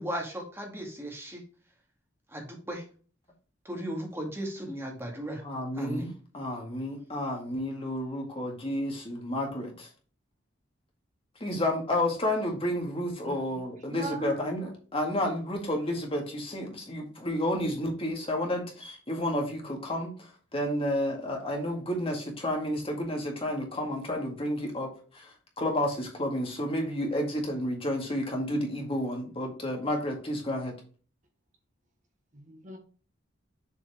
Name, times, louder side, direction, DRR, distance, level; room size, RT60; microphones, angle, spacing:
voice 1, 0.0-1.4 2.3-2.8 3.7-5.4 5.7-6.1, equal, 10° right, 0 dB, 1.9 m, -36 dB
voice 2, 5.4-9.9 11.4-30.7, left 1 dB, 30° left, 1 dB, 1.9 m, -31 dB
voice 3, 13.9-14.5 32.3-32.8, right 2 dB, 40° right, 4 dB, 1.2 m, -38 dB
7.1 x 4.7 x 3.4 m, 0.39 s
head